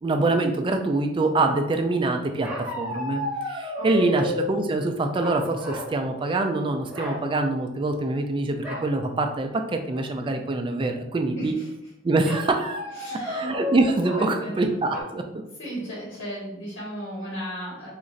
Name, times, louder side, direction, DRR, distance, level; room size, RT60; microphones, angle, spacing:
voice 1, 0.0-11.6 12.0-12.8 13.3-15.2, right 2 dB, 25° right, 5 dB, 0.3 m, -25 dB
sound 1, 2.4-4.6 5.2-5.9 6.3-6.5 6.9-7.2 8.6-8.9 9.4-9.5 9.9-10.3 12.2-14.3 14.9-15.0, left 1 dB, 5° right, 0.8 m, -32 dB
voice 2, 3.8-4.3 11.4-11.7 12.9-13.4 14.2-14.6 15.6-17.9, equal, 65° left, -6 dB, 1.2 m, -35 dB
3.0 x 2.5 x 3.8 m, 0.88 s
head